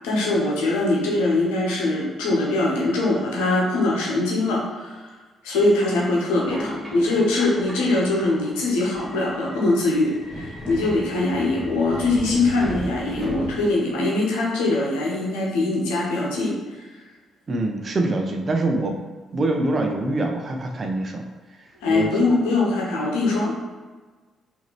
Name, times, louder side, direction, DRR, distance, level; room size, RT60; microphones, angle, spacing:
voice 1, 0.0-5.2 5.4-17.0 21.8-23.6, left 2 dB, 70° left, -3 dB, 1.0 m, -22 dB
Subway metro underground, 6.4-13.9, equal, 10° right, 1.3 m, -36 dB
voice 2, 17.5-19.0 19.3-21.2 21.9-22.1, right 2 dB, 40° right, 3 dB, 0.7 m, -24 dB
4.8 x 2.9 x 3.2 m, 1.3 s
figure-of-eight pair, 40°, 0 cm